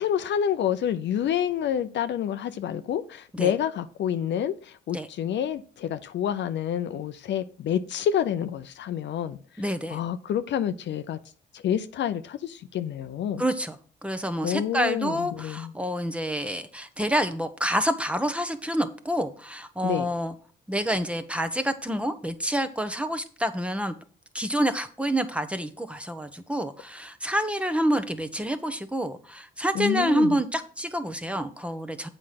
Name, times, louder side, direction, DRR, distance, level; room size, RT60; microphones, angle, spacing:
voice 1, 0.0-9.4 9.9-11.2 11.5-13.4 14.4-15.7 19.8-20.1 29.7-30.4, left 9 dB, 65° left, 0.6 m, -28 dB
voice 2, 9.6-10.0 13.4-13.8 14.0-20.3 20.7-23.9 24.3-32.1, equal, 5° right, 1.0 m, -28 dB
7.7 x 5.0 x 5.8 m
cardioid pair, 90°, 20 cm